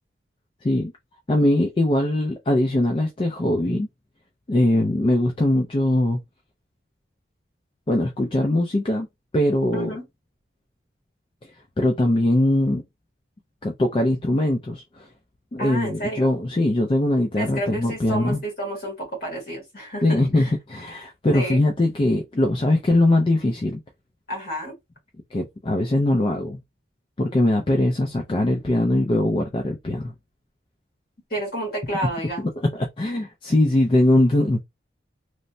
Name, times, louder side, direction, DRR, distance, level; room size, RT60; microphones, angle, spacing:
voice 1, 1.3-3.9 4.5-6.2 7.9-9.1 9.3-9.9 11.8-12.8 13.6-15.1 15.5-18.4 20.0-23.8 25.3-26.6 27.2-30.1 32.7-34.6, left 1 dB, 25° left, 0.4 m, -21 dB
voice 2, 9.7-10.0 15.6-16.3 17.3-20.5 21.3-21.6 24.3-24.7 31.3-32.5, right 1 dB, 50° left, 1.5 m, -30 dB
3.1 x 2.0 x 2.6 m
head